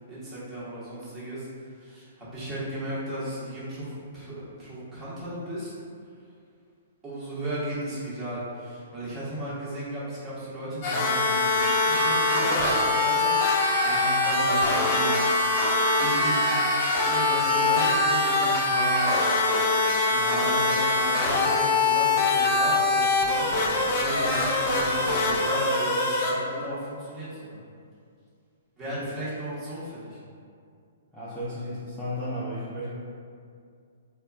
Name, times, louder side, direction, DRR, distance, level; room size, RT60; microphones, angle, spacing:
voice 1, 0.1-5.7 7.0-16.6 17.0-19.2 20.0-27.6 28.8-30.2, right 1 dB, 15° right, -10 dB, 1.3 m, -35 dB
sound 1, 10.8-26.3, left 3 dB, 35° left, 0.6 m, -24 dB
Keyboard (musical), 11.6-19.3, right 2 dB, 55° right, 0.4 m, -30 dB
voice 2, 31.1-32.9, equal, ahead, -14 dB, 0.7 m, -33 dB
4.4 x 2.3 x 2.3 m, 2.3 s
figure-of-eight pair, 120°, 0 cm